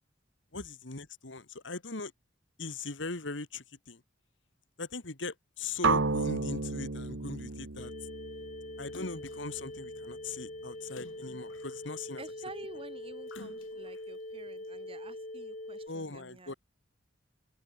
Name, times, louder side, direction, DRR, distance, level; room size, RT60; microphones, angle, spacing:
voice 1, 0.5-2.1 2.6-4.0 4.8-7.9 8.8-12.2 15.9-16.5, left 3 dB, 65° left, 2.2 m, -40 dB
sound 1, 5.8-9.8, right 3 dB, 75° right, 1.5 m, -32 dB
sound 2, 7.8-15.9, left 1 dB, 40° left, 4.5 m, -43 dB
Splash splatter, 8.9-9.5 10.9-12.1 13.3-14.1 14.6-14.7, left 2 dB, 90° left, 4.8 m, -52 dB
voice 2, 12.2-16.6, right 2 dB, 30° right, 3.3 m, -49 dB
open air
head